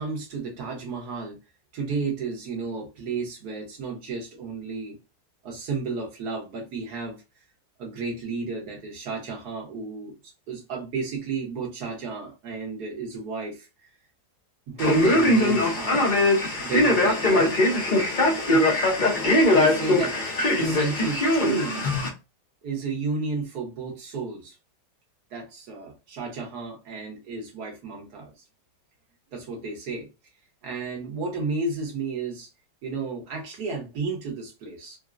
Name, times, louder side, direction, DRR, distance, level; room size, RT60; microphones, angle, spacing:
voice 1, 0.0-1.4 1.7-5.0 5.4-7.2 7.8-10.2 10.5-13.9 14.7-16.1 16.5-17.6 18.4-18.8 19.5-20.2 20.4-21.9 22.6-24.6 25.3-28.3 29.3-30.1 30.6-32.5 32.8-35.0, right 4 dB, 60° right, 1.4 m, -32 dB
Male speech man speaking, 14.8-22.1, left 1 dB, 50° left, 0.5 m, -21 dB
3.9 x 2.0 x 2.4 m
omnidirectional pair, 2.0 m